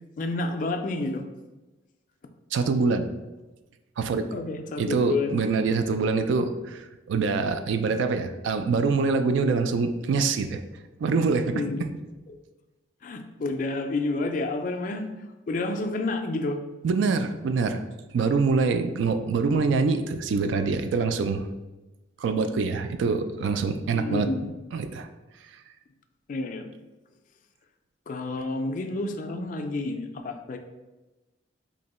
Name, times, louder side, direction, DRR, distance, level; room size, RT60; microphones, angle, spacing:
voice 1, 0.2-1.3 4.3-5.4 11.5-11.9 13.0-15.1 15.5-16.6 23.9-24.5 26.3-26.7 28.1-30.6, left 2 dB, 45° left, 5 dB, 0.3 m, -29 dB
voice 2, 2.5-3.1 4.0-4.2 4.8-10.6 11.0-11.6 16.8-17.8 18.1-21.5 22.2-24.3 24.7-25.1, right 4 dB, 75° right, 9 dB, 0.3 m, -25 dB
2.8 x 2.6 x 4.1 m, 1.1 s
head